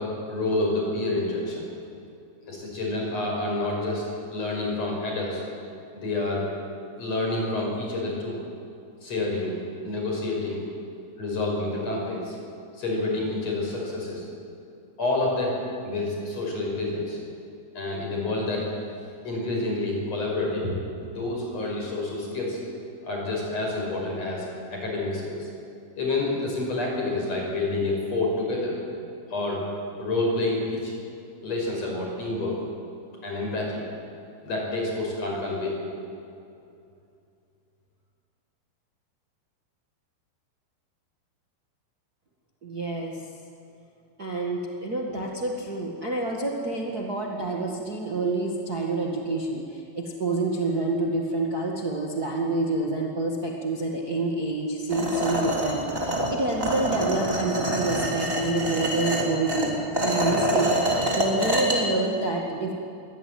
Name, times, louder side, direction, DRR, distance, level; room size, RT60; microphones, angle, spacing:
voice 1, 0.0-1.7 2.5-5.4 5.9-6.4 7.0-8.4 9.0-10.6 11.2-12.4 12.7-14.3 15.0-17.2 17.7-18.6 19.2-20.7 21.0-22.6 23.0-25.5 26.0-28.8 29.3-29.6 30.0-30.9 31.4-32.6 33.2-33.8 34.4-35.8, left 2 dB, 35° left, -1 dB, 6.5 m, -28 dB
voice 2, 42.6-43.2 44.2-62.7, right 2 dB, 60° right, -1 dB, 0.9 m, -28 dB
sound 1, 54.9-61.8, right 1 dB, 15° right, 2.6 m, -26 dB
23.0 x 17.5 x 9.4 m, 2.6 s
omnidirectional pair, 5.1 m